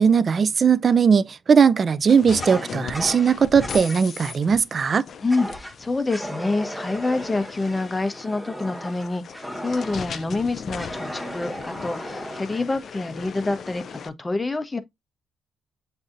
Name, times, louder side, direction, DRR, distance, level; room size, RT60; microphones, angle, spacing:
voice 1, 0.0-5.0, right 6 dB, 40° right, 0.3 m, -19 dB
sound 1, 2.1-14.1, left 6 dB, 55° left, 0.4 m, -38 dB
Fire, 2.4-4.0 5.3-5.7 6.1-10.2 10.8-12.6, equal, 10° right, 1.2 m, -36 dB
voice 2, 5.2-14.8, left 3 dB, 20° left, 0.7 m, -27 dB
7.4 x 2.7 x 2.5 m
cardioid pair, 90°, 0 cm